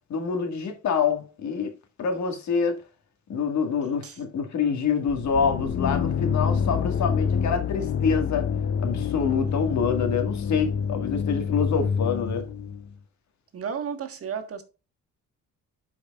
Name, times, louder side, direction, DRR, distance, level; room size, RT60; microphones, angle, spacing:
voice 1, 0.1-1.7 2.0-2.8 3.3-8.5 8.8-12.5, left 6 dB, 65° left, 1.8 m, -26 dB
sound 1, 5.1-12.9, left 7 dB, 40° left, 0.7 m, -27 dB
voice 2, 13.5-14.6, right 7 dB, 50° right, 1.6 m, -33 dB
11.5 x 4.9 x 2.4 m
cardioid pair, 90°, 30 cm